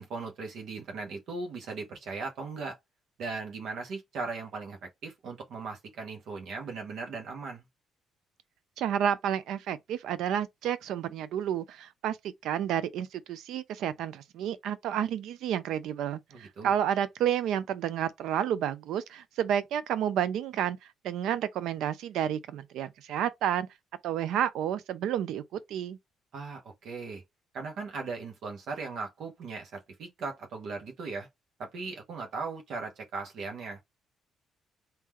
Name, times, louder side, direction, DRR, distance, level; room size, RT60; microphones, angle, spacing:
voice 1, 0.0-2.8 3.2-7.6 16.3-16.7 26.3-27.2 27.5-31.3 31.6-33.8, right 4 dB, 55° right, 1.1 m, -38 dB
voice 2, 8.8-20.8 21.0-23.7 24.0-25.4 25.7-26.0, right 10 dB, 75° right, 0.5 m, -30 dB
3.7 x 2.7 x 3.0 m
cardioid pair, 175°, 0 cm